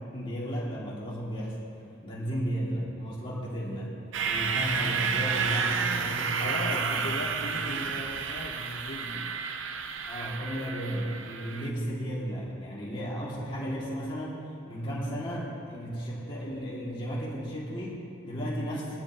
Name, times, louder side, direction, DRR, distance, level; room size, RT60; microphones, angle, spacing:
voice 1, 0.1-1.7 2.0-3.9 4.2-8.0 10.1-19.0, equal, 25° left, -6 dB, 2.6 m, -34 dB
sound 1, 4.1-11.7, right 5 dB, 70° right, 0.7 m, -31 dB
voice 2, 6.4-9.3, left 1 dB, 70° left, 0 dB, 1.4 m, -38 dB
21.0 x 12.5 x 3.1 m, 2.6 s
head